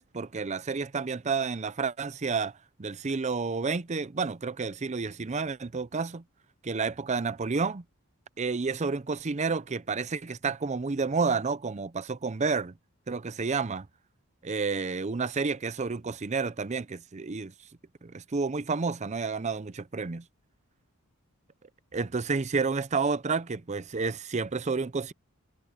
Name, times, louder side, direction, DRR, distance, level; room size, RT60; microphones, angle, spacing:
voice 1, 0.0-2.5 2.8-6.2 6.6-7.8 8.4-12.7 13.1-13.9 14.4-17.5 18.0-20.2 21.9-25.1, right 4 dB, 30° right, 0.6 m, -30 dB
head